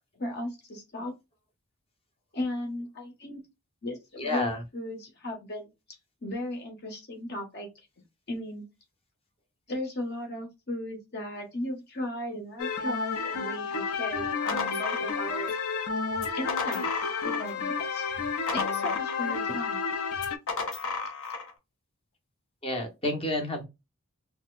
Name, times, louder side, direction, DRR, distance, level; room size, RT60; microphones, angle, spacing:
voice 1, 0.2-1.1 2.3-3.4 3.8-5.7 6.2-7.7 8.3-8.6 9.7-15.6 16.3-18.1 18.5-19.8, left 1 dB, 50° left, 1.4 m, -36 dB
voice 2, 4.2-4.6 22.6-23.6, left 1 dB, 25° left, 1.0 m, -30 dB
sound 1, 12.6-20.4, left 5 dB, 90° left, 0.6 m, -31 dB
sound 2, 14.1-15.6 16.1-17.6 17.9-19.5 20.2-21.5, left 4 dB, 65° left, 1.0 m, -34 dB
4.2 x 2.2 x 2.4 m
head